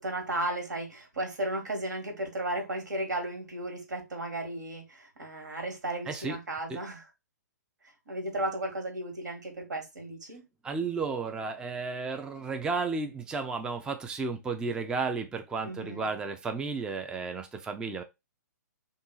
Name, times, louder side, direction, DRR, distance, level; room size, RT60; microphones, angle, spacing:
voice 1, 0.0-7.1 8.1-10.4 15.6-16.1, right 1 dB, 80° right, 1.6 m, -34 dB
voice 2, 6.1-6.4 6.7-6.8 10.6-18.0, right 4 dB, 10° right, 0.3 m, -33 dB
3.7 x 2.4 x 3.8 m
hypercardioid pair, 125°, 10 cm